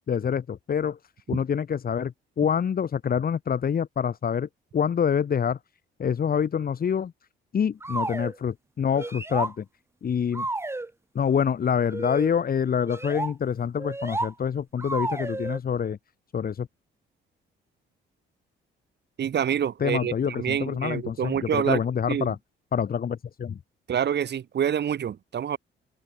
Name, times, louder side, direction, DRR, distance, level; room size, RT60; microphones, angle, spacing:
voice 1, 0.1-1.0 1.3-5.6 6.0-7.1 7.5-9.6 10.0-10.5 11.1-16.0 16.3-16.7 19.8-22.4 22.7-23.6, left 7 dB, 50° left, 2.3 m, -26 dB
sound 1, 7.8-8.4 8.9-9.5 10.3-10.9 11.9-12.3 12.9-13.3 13.8-14.3 14.8-15.6, right 2 dB, 15° right, 1.4 m, -31 dB
voice 2, 19.2-21.8 22.1-22.3 23.9-25.6, right 9 dB, 60° right, 4.8 m, -27 dB
open air
cardioid pair, 90°, 20 cm